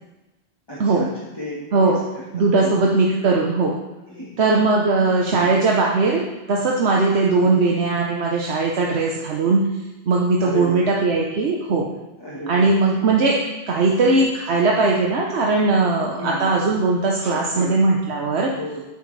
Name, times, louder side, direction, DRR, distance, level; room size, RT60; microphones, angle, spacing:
voice 1, 0.7-2.2 2.6-2.9 4.1-4.4 5.3-5.6 7.4-7.7 10.4-10.8 12.2-12.6 13.9-14.0 14.5-14.8 16.1-16.5 17.2-17.7 18.5-18.8, left 1 dB, 25° left, -6 dB, 1.5 m, -33 dB
voice 2, 1.7-2.0 2.3-3.8 4.4-6.2 6.5-9.6 10.1-11.9 12.5-13.4 13.7-18.5, right 3 dB, 85° right, -2 dB, 1.2 m, -19 dB
9.6 x 9.1 x 3.3 m, 1.1 s
omnidirectional pair, 1.1 m